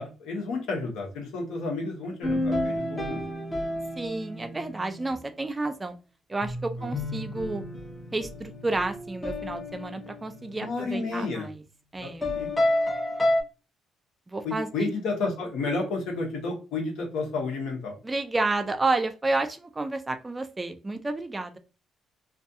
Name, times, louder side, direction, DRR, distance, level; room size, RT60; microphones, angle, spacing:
voice 1, 0.0-3.2 6.8-6.9 10.6-11.5 12.0-12.5 14.4-18.0, left 3 dB, 85° left, 1 dB, 0.8 m, -31 dB
sound 1, 2.2-5.1 6.4-10.9 12.2-13.4, left 1 dB, 25° left, 0.7 m, -30 dB
voice 2, 4.0-6.0 6.3-7.6 8.1-11.6 11.9-12.3 14.3-14.9 15.3-15.4 18.0-21.6, right 2 dB, 20° right, 8 dB, 0.4 m, -30 dB
2.3 x 2.2 x 2.6 m, 0.32 s
cardioid pair, 90°, 0 cm